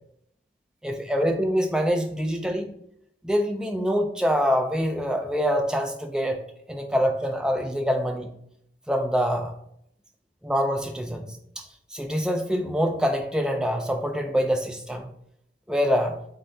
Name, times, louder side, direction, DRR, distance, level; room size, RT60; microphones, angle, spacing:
voice 1, 0.8-2.7 3.2-6.4 6.7-8.3 8.9-9.5 10.4-11.6 11.9-15.1 15.7-16.2, equal, 5° right, 4 dB, 0.4 m, -25 dB
5.1 x 3.3 x 2.7 m, 0.72 s
head